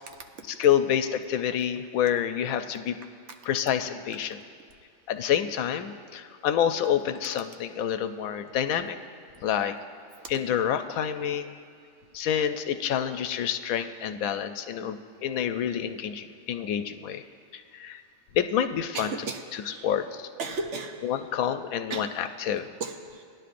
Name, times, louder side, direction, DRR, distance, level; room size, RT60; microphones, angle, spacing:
voice 1, 0.6-3.0 3.5-4.4 5.1-9.0 9.4-9.8 10.3-11.5 12.1-17.2 17.5-18.0 18.3-19.1 19.5-20.3 21.0-22.7, left 9 dB, 90° left, 9 dB, 1.0 m, -28 dB
voice 2, 18.9-19.9 20.4-21.0 21.9-22.1 22.8-23.2, right 3 dB, 65° right, 4 dB, 1.1 m, -35 dB
18.5 x 10.5 x 2.5 m, 2.3 s
omnidirectional pair, 1.4 m